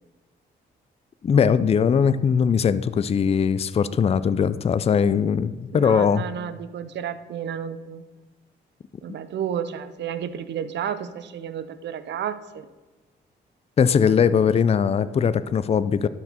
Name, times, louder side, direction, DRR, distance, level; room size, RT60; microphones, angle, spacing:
voice 1, 1.2-6.2 13.8-16.1, left 7 dB, 35° left, 15 dB, 0.4 m, -20 dB
voice 2, 5.7-8.0 9.0-12.7 14.0-14.5, right 8 dB, 70° right, 13 dB, 0.6 m, -32 dB
12.0 x 4.5 x 4.3 m, 1.3 s
cardioid pair, 75°, 19 cm